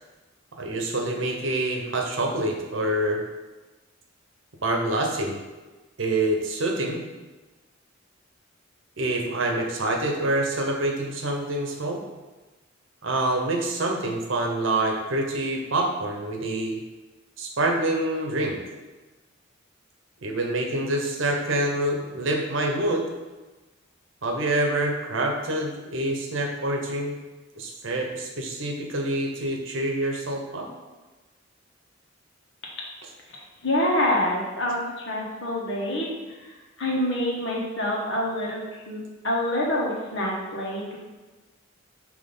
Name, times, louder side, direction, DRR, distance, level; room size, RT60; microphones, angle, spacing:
voice 1, 0.6-3.2 4.6-5.4 6.0-7.0 9.0-12.0 13.0-16.8 17.4-18.6 20.2-23.1 24.2-27.1 27.6-30.7, right 1 dB, 70° right, 1 dB, 0.9 m, -26 dB
voice 2, 33.6-36.1 36.8-41.0, left 1 dB, 65° left, -2 dB, 1.4 m, -26 dB
6.1 x 3.0 x 5.3 m, 1.2 s
head